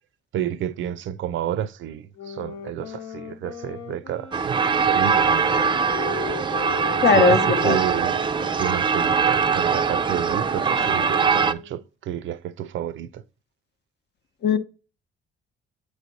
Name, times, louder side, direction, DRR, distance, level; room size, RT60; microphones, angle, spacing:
voice 1, 0.3-5.8 7.1-8.1 8.6-13.2, right 10 dB, 75° right, 0.5 m, -30 dB
sound 1, 2.1-11.8, left 8 dB, 80° left, 1.0 m, -38 dB
sound 2, 4.3-11.5, right 6 dB, 25° right, 0.4 m, -22 dB
voice 2, 7.0-7.8 14.4-14.6, left 6 dB, 55° left, 0.8 m, -18 dB
8.4 x 3.2 x 4.0 m
cardioid pair, 90°, 20 cm